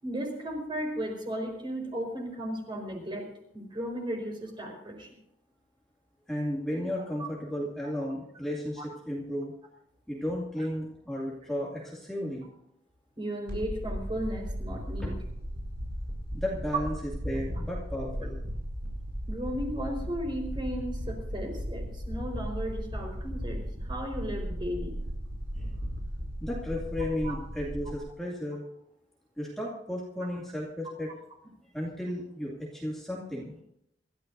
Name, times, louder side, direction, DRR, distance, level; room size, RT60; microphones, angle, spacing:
voice 1, 0.0-3.2 3.5-5.1 7.2-7.3 8.8-8.9 10.6-10.7 13.2-15.2 19.3-24.9 27.2-27.4, equal, 30° right, 1 dB, 4.6 m, -35 dB
voice 2, 6.3-9.5 10.1-12.4 15.0-15.1 16.3-16.9 17.2-18.5 25.6-25.7 26.4-28.6 29.4-31.1 31.7-33.6, left 1 dB, ahead, -5 dB, 2.4 m, -34 dB
sound 1, 13.5-28.0, equal, 75° right, 6.4 m, -36 dB
26.5 x 13.5 x 2.7 m, 0.75 s
head